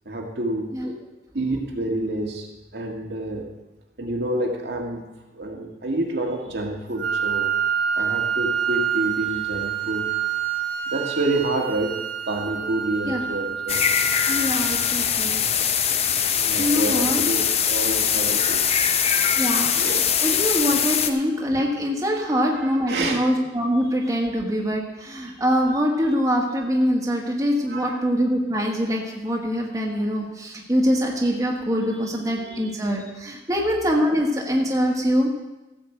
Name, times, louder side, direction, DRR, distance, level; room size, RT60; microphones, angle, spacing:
voice 1, 0.1-0.7 1.3-2.5 2.7-3.5 4.0-5.0 5.3-7.5 8.0-10.1 10.9-11.9 12.3-13.8 16.3-19.4 19.7-20.2 22.2-22.4 22.9-23.2 25.3-25.4 27.7-28.0 32.4-32.7, right 2 dB, 75° right, 0 dB, 1.8 m, -28 dB
Wind instrument woodwind instrument, 7.0-14.9, right 8 dB, 50° right, 1.4 m, -27 dB
sound 1, 13.7-21.1, left 8 dB, 35° left, 0.6 m, -22 dB
voice 2, 14.3-15.4 15.9-16.0 16.6-17.2 19.4-19.7 20.2-35.3, equal, 20° right, -1 dB, 1.4 m, -24 dB
15.0 x 5.3 x 7.8 m, 1.0 s
head